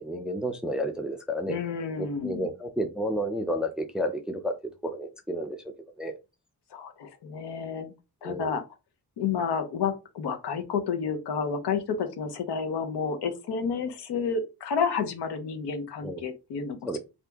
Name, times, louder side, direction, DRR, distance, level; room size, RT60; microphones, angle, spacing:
voice 1, 0.0-1.6 2.0-4.5 4.8-5.6 6.0-6.1 8.2-8.6 16.0-16.2 16.8-17.0, equal, ahead, 6 dB, 0.4 m, -31 dB
voice 2, 1.5-2.5 6.7-7.9 8.2-8.6 9.2-17.0, left 6 dB, 80° left, 7 dB, 0.8 m, -30 dB
2.8 x 2.5 x 3.4 m, 0.27 s
wide cardioid pair, 125°, 40 cm